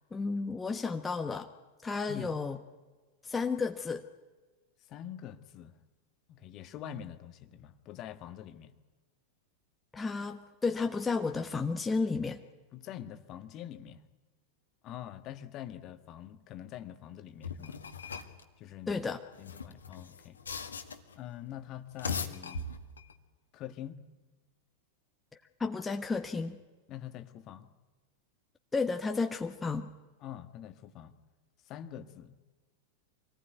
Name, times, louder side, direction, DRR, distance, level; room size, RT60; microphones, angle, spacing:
voice 1, 0.1-1.5 1.8-2.6 3.2-4.0 9.9-12.4 18.9-19.2 25.6-26.6 28.7-29.9, left 4 dB, 15° left, 5 dB, 1.2 m, -32 dB
voice 2, 4.9-5.7 6.3-8.7 12.7-14.0 14.8-17.8 18.6-19.0 19.4-20.4 21.1-22.8 23.5-24.0 26.9-27.7 30.2-31.1 31.7-32.4, left 10 dB, 35° left, 10 dB, 1.5 m, -45 dB
sound 1, 17.4-18.4 19.3-21.2 21.8-23.1, left 5 dB, 70° left, 1.8 m, -39 dB
26.0 x 19.0 x 9.4 m, 1.3 s
figure-of-eight pair, 90°, 0 cm